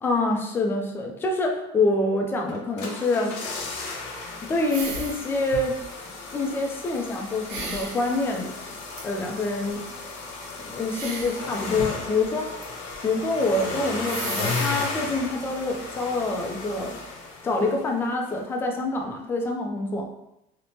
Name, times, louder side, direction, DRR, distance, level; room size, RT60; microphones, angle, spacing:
voice 1, 0.0-3.4 4.5-5.8 6.3-8.5 9.0-9.9 10.6-12.5 13.0-17.0 17.4-20.1, left 2 dB, 15° left, 1 dB, 0.3 m, -26 dB
sound 1, 2.5-18.0 18.3-18.4, left 3 dB, 80° left, 0.6 m, -35 dB
sound 2, 4.7-5.3 5.5-5.9 7.5-8.0 8.9-9.0 10.9-11.4 11.7-12.6 12.9-13.0 13.5-13.6 14.0-14.9, right 3 dB, 80° right, 0.8 m, -35 dB
3.0 x 2.0 x 2.7 m, 0.86 s
cardioid pair, 165°, 14 cm